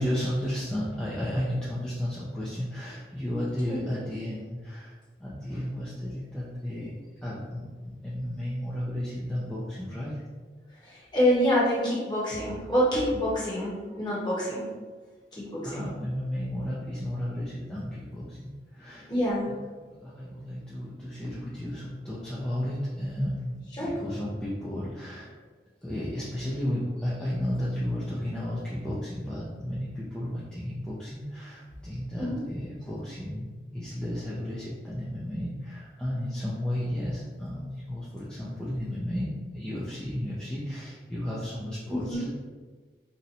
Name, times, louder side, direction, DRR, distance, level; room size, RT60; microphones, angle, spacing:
voice 1, 0.0-4.9 5.2-6.9 7.2-10.2 15.4-19.1 19.5-19.6 20.0-25.3 25.8-42.3, equal, 5° left, -8 dB, 0.4 m, -33 dB
voice 2, 10.8-14.6 15.3-15.8 19.0-19.5 19.7-19.8 23.7-23.9 32.2-32.4 41.9-42.2, equal, 25° left, -7 dB, 0.9 m, -27 dB
2.8 x 2.1 x 3.8 m, 1.4 s
head